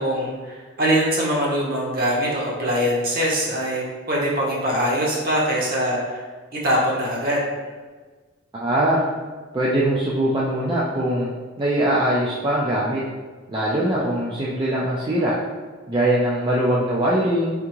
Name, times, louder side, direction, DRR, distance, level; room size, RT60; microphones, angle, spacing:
voice 1, 0.0-6.2 6.6-7.4, equal, 45° right, -3 dB, 1.0 m, -22 dB
voice 2, 8.6-9.0 9.5-11.3 11.6-13.0 13.5-15.3 15.9-17.5, right 1 dB, 20° right, -6 dB, 0.4 m, -21 dB
3.6 x 3.5 x 3.0 m, 1.4 s
head